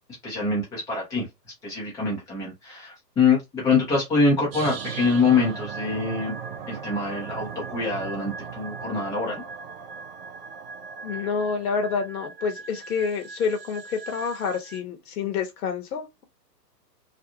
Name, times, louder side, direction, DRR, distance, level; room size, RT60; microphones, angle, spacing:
voice 1, 0.2-1.3 1.6-6.4 6.7-9.4, left 4 dB, 5° left, 0.5 m, -24 dB
sound 1, 4.5-14.8, right 6 dB, 35° right, 0.6 m, -37 dB
voice 2, 11.0-16.2, left 5 dB, 60° left, 1.0 m, -28 dB
2.5 x 2.3 x 2.7 m
hypercardioid pair, 135°, 50 cm